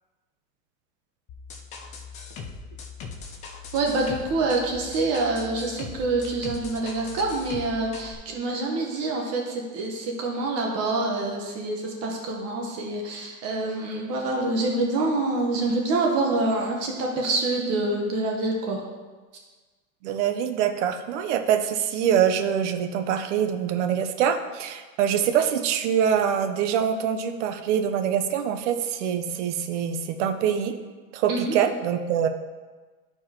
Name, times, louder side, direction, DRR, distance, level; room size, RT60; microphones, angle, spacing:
sound 1, 1.3-8.1, left 5 dB, 20° left, 0.4 m, -40 dB
voice 1, 3.7-18.8 31.3-31.5, right 2 dB, 40° right, 0 dB, 1.2 m, -26 dB
voice 2, 20.0-30.7 31.1-32.3, right 8 dB, 60° right, 7 dB, 0.8 m, -24 dB
13.0 x 4.6 x 2.9 m, 1.3 s
supercardioid pair, 145°, 40 cm